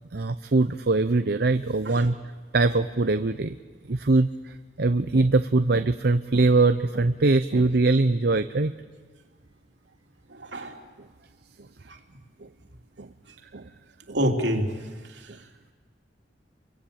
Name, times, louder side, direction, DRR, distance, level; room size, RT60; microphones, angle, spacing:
voice 1, 0.1-2.2 2.5-3.6 3.9-4.3 4.8-8.7 13.0-13.1 13.5-13.6 14.1-14.2, right 3 dB, 60° right, 10 dB, 0.7 m, -22 dB
voice 2, 10.3-10.7 11.9-12.0 14.1-14.7 15.1-15.3, equal, 80° right, 3 dB, 3.3 m, -27 dB
28.5 x 24.0 x 8.6 m, 1.5 s
head